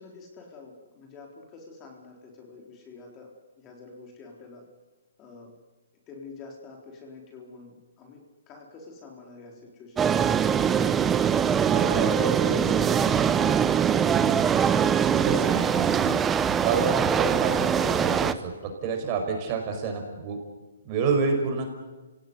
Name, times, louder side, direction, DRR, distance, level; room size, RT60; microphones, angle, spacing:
voice 1, 0.0-3.3 3.6-4.6 5.2-5.5 6.1-10.1, left 4 dB, 20° left, 0 dB, 3.9 m, -47 dB
sound 1, 10.0-18.3, right 8 dB, 10° right, 0.8 m, -23 dB
voice 2, 11.6-13.5 14.1-14.4 15.1-16.2 16.5-20.4 20.9-21.6, right 4 dB, 30° right, 4 dB, 5.4 m, -29 dB
28.0 x 17.5 x 9.7 m, 1.2 s
hypercardioid pair, 155°, 0 cm